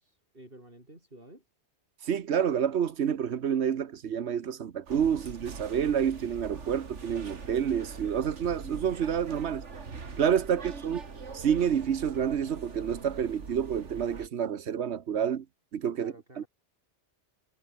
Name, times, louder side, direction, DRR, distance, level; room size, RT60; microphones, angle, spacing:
voice 1, 0.0-1.5 15.9-16.5, right 1 dB, 50° right, 7.2 m, -52 dB
voice 2, 2.0-9.6 10.2-11.0 11.3-15.5 15.7-16.4, right 8 dB, 70° right, 1.3 m, -28 dB
sound 1, 4.9-14.3, right 4 dB, 90° right, 2.3 m, -43 dB
omnidirectional pair, 1.2 m